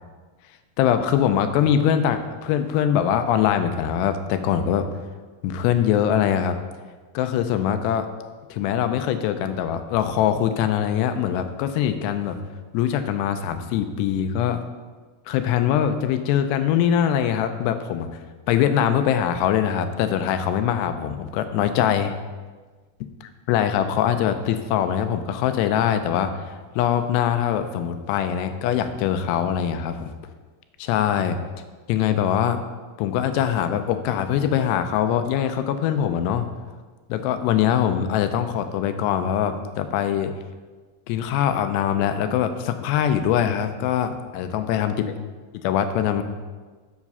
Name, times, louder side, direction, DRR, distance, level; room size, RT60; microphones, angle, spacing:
voice 1, 0.8-4.9 5.4-6.6 7.1-8.1 8.5-12.4 12.7-14.6 15.3-18.1 18.5-22.1 23.5-30.1 30.8-31.4 31.9-32.6 33.0-36.5 37.1-40.3 41.1-45.1 45.5-46.2, left 9 dB, 80° left, 9 dB, 2.7 m, -22 dB
7.4 x 7.4 x 5.4 m, 1.4 s
omnidirectional pair, 4.9 m